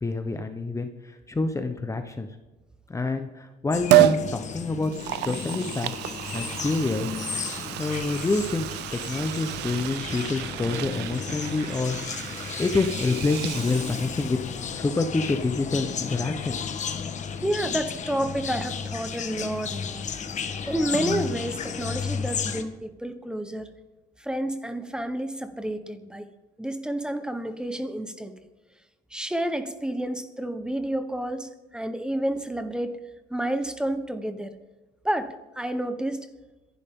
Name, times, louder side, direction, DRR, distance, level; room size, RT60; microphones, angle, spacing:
voice 1, 0.0-2.3 2.9-4.9 5.2-5.9 6.3-7.1 7.8-12.0 12.4-14.4 14.7-16.7, left 3 dB, 20° left, 7 dB, 1.0 m, -27 dB
sound 1, 3.7-22.6, left 6 dB, 45° left, 1.5 m, -34 dB
Liquid, 3.9-4.2 4.8-14.5 14.8-14.9, right 15 dB, 85° right, 0.6 m, -28 dB
voice 2, 17.4-20.0 20.4-23.7 24.2-26.3 26.6-28.3 29.1-33.0 33.3-34.6 35.0-36.2, right 1 dB, 5° right, 9 dB, 1.2 m, -30 dB
26.5 x 11.5 x 3.8 m, 1.1 s
cardioid pair, 110°, 17 cm